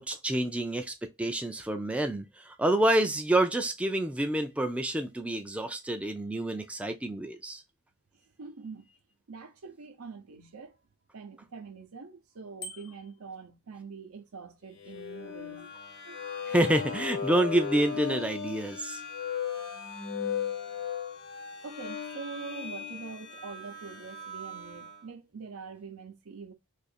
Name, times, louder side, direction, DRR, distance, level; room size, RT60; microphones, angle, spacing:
voice 1, 0.0-7.6 16.5-19.0, right 1 dB, 5° right, 0.3 m, -28 dB
voice 2, 8.4-8.9 9.3-10.8 11.1-16.2 21.6-26.5, right 4 dB, 70° right, 0.6 m, -44 dB
Bicycle bell, 12.6-13.2, left 2 dB, 60° left, 0.8 m, -43 dB
sound 1, 14.8-25.0, left 6 dB, 85° left, 1.0 m, -37 dB
2.7 x 2.5 x 4.2 m
head